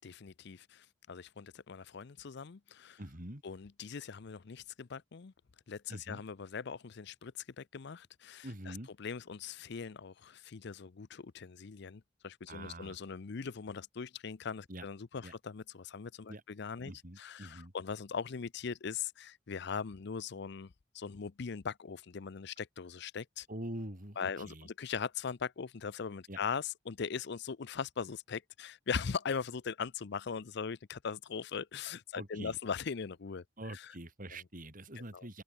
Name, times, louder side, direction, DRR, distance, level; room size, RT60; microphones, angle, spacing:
voice 1, 0.0-3.0 3.4-5.3 5.7-16.9 17.2-23.5 24.2-33.4 33.7-33.9 35.1-35.3, left 6 dB, 60° left, 0.5 m, -40 dB
voice 2, 3.0-3.4 5.9-6.2 8.4-8.9 12.5-13.0 14.7-14.9 15.2-15.3 16.3-16.4 16.8-17.7 23.5-24.7 26.3-26.4 32.1-32.6 33.6-35.4, right 1 dB, 45° right, 5.0 m, -45 dB
head